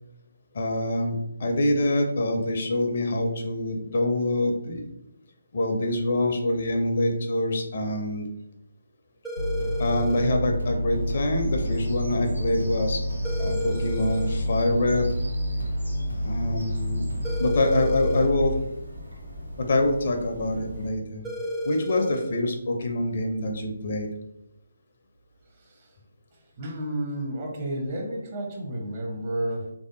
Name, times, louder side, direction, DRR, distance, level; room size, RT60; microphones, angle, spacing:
voice 1, 0.5-4.9 5.5-8.3 9.8-13.0 13.4-15.1 16.2-17.0 17.4-18.6 19.6-21.3 21.6-24.1, left 1 dB, 50° left, 4 dB, 0.5 m, -25 dB
sound 1, 9.2-10.3 13.2-14.3 17.2-18.3 21.2-22.3, equal, 5° right, 0.5 m, -32 dB
sound 2, 9.4-18.6, equal, 85° left, 0.8 m, -29 dB
Bird vocalization bird call bird song, 10.9-20.9, right 1 dB, 90° right, 0.9 m, -40 dB
voice 2, 26.6-29.7, right 1 dB, 35° right, 0 dB, 0.8 m, -31 dB
3.2 x 2.7 x 2.6 m, 0.81 s
figure-of-eight pair, 145°, 0 cm